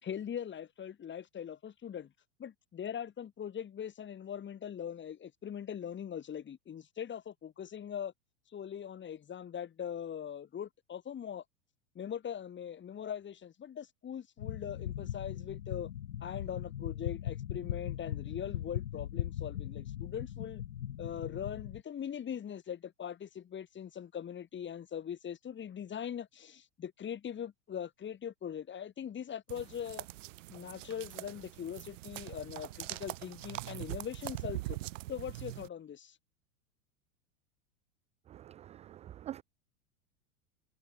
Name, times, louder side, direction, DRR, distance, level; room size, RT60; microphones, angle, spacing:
voice 1, 0.0-2.1 2.4-8.1 8.5-11.4 11.9-15.9 16.2-20.6 21.0-30.1 30.5-34.8 35.1-36.2, left 8 dB, 25° left, 5.1 m, -41 dB
sound 1, 14.4-21.8, left 11 dB, 85° left, 0.8 m, -39 dB
sound 2, 29.5-35.7, right 17 dB, 60° right, 1.3 m, -42 dB
voice 2, 38.3-39.4, right 12 dB, 15° right, 0.4 m, -46 dB
hypercardioid pair, 95°, 42 cm